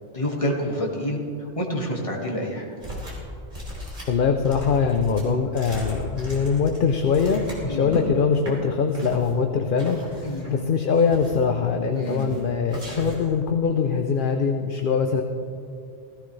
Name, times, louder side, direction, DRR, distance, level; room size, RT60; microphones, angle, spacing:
voice 1, 0.1-2.7 7.7-8.0 10.2-10.5 11.9-12.4, equal, 30° left, -2 dB, 2.0 m, -28 dB
sound 1, 2.8-3.3 3.5-8.0 8.4-8.5 8.9-9.3 9.8-10.5 10.9-11.5 12.0-12.4 12.7-13.3, left 1 dB, 45° right, 3.7 m, -36 dB
voice 2, 4.1-10.2 10.5-15.2, left 5 dB, 55° left, 5 dB, 0.8 m, -22 dB
16.0 x 16.0 x 3.3 m, 2.6 s
omnidirectional pair, 1.2 m